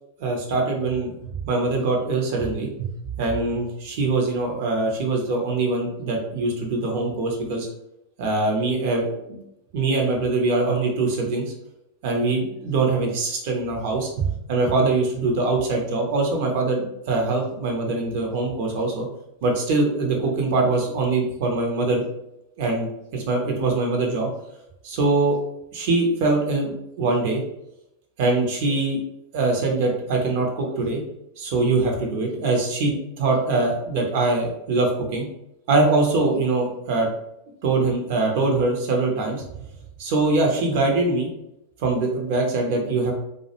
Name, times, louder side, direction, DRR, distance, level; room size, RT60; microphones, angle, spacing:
voice 1, 0.2-2.9 3.2-7.7 8.2-9.2 9.7-11.5 12.0-19.1 19.4-22.0 22.6-24.3 24.8-25.4 25.7-26.7 27.0-27.4 28.2-29.0 29.3-31.0 31.4-35.3 35.7-37.1 37.6-39.4 40.0-41.3 41.8-43.1, right 3 dB, 50° right, 1 dB, 0.6 m, -23 dB
2.3 x 2.1 x 2.8 m, 0.83 s
figure-of-eight pair, 90°, 0 cm